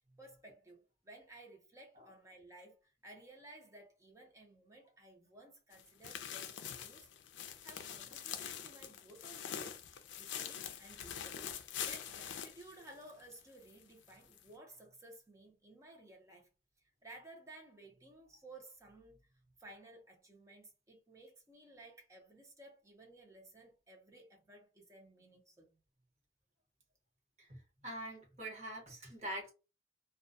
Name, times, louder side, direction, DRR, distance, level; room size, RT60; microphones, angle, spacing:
voice 1, 0.1-7.1 7.3-9.8 10.2-11.4 11.8-16.5 17.0-19.3 19.6-25.8, right 2 dB, 15° right, 0.6 m, -57 dB
sound 1, 5.7-13.4 13.7-13.8 14.3-14.4, left 9 dB, 85° left, 0.4 m, -44 dB
voice 2, 27.4-29.5, right 1 dB, 40° right, 1.0 m, -44 dB
2.3 x 2.1 x 2.6 m
head